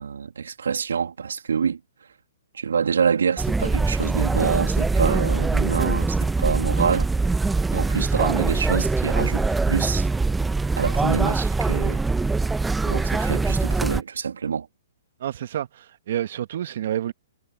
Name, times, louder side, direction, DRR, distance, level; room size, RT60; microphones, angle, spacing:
voice 1, 0.0-1.8 2.5-7.1 7.7-10.1 10.8-12.0 12.9-14.7, right 6 dB, 80° right, 2.7 m, -26 dB
sound 1, 3.4-14.0, right 3 dB, 5° right, 0.9 m, -23 dB
voice 2, 15.2-17.1, right 11 dB, 60° right, 1.8 m, -29 dB
hypercardioid pair, 125°, 0 cm